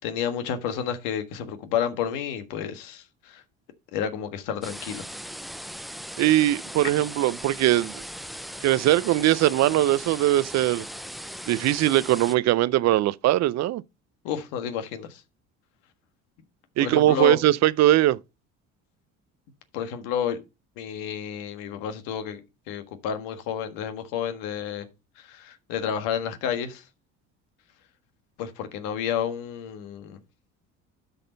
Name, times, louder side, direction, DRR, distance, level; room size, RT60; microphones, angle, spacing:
voice 1, 0.0-3.4 3.9-5.0 14.2-15.2 16.8-17.4 19.7-20.4 20.8-22.4 22.7-24.9 25.2-26.8 28.4-30.2, left 8 dB, 80° left, 1.6 m, -30 dB
sound 1, 4.6-12.4, equal, ahead, 0.4 m, -39 dB
voice 2, 6.2-8.0 8.6-10.8 11.5-13.8 16.8-18.2, right 14 dB, 50° right, 0.6 m, -21 dB
12.0 x 4.2 x 3.9 m
supercardioid pair, 80°, 34 cm